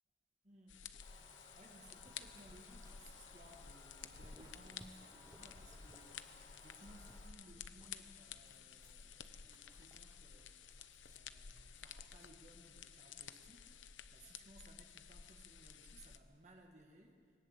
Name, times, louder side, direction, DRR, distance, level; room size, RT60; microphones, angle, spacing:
voice 1, 0.4-17.4, right 1 dB, 40° right, 1 dB, 1.7 m, -62 dB
sound 1, 0.7-16.2, left 7 dB, 85° left, 0.9 m, -54 dB
Motor vehicle (road) / Engine, 1.0-7.3, left 2 dB, 30° left, 2.7 m, -62 dB
Dog, 1.7-12.3, right 1 dB, 15° right, 0.8 m, -67 dB
20.5 x 18.5 x 8.2 m, 2.1 s
head